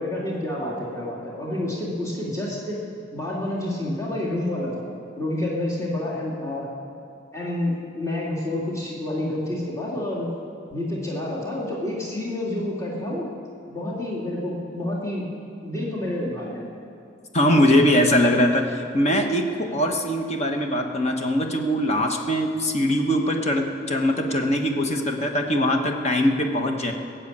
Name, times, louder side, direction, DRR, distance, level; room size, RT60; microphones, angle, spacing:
voice 1, 0.0-2.8 3.1-4.8 5.2-6.7 7.3-10.3 10.7-13.3 13.7-15.3 15.6-16.6, left 1 dB, 15° left, -6 dB, 2.4 m, -28 dB
voice 2, 17.3-26.9, left 1 dB, 35° left, 3 dB, 1.2 m, -22 dB
17.0 x 7.3 x 8.6 m, 2.5 s
head